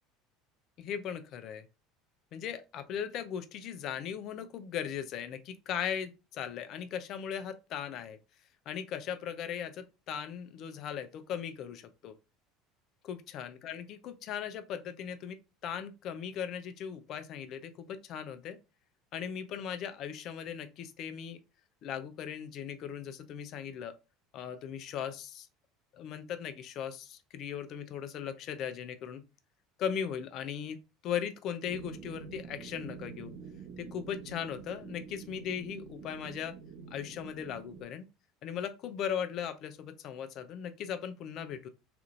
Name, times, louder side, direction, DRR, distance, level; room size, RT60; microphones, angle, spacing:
voice 1, 0.8-1.7 2.3-8.2 8.7-12.1 13.0-18.6 19.1-21.4 21.8-24.0 24.3-25.5 25.9-29.2 29.8-33.3 33.8-36.6 36.9-38.1 38.4-41.7, left 8 dB, 55° left, 0.4 m, -38 dB
sound 1, 31.6-37.8, right 6 dB, 55° right, 0.6 m, -47 dB
2.8 x 2.5 x 2.4 m
hypercardioid pair, 80°, 0 cm